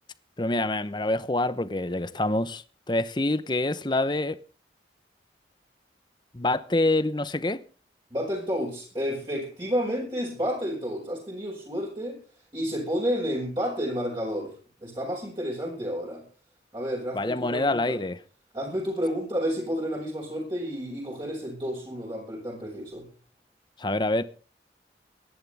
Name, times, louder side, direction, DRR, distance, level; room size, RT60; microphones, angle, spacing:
voice 1, 0.4-4.4 6.3-7.6 17.1-18.2 23.8-24.2, left 2 dB, 25° left, 0.8 m, -26 dB
voice 2, 8.1-12.2 12.5-14.5 14.8-16.2 16.7-18.0 18.5-23.1, equal, 30° right, 6.0 m, -30 dB
23.5 x 11.0 x 3.5 m
head